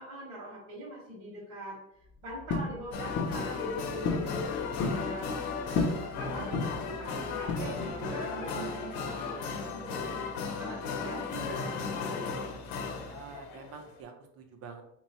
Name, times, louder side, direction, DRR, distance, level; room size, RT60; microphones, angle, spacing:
voice 1, 0.0-1.8 2.2-4.5 4.8-5.3 5.6-12.4, right 1 dB, 60° right, -7 dB, 1.5 m, -43 dB
sound 1, 2.5-2.7 3.2-3.4 4.0-4.3 4.6-5.0 5.7-6.0 6.5-6.9 7.5-8.0, left 3 dB, 35° left, 0.4 m, -30 dB
sound 2, 2.9-14.0, left 4 dB, 80° left, 0.8 m, -35 dB
voice 2, 12.9-14.8, right 5 dB, 40° right, 5 dB, 0.5 m, -47 dB
3.6 x 3.0 x 2.9 m, 0.75 s
cardioid pair, 160°, 38 cm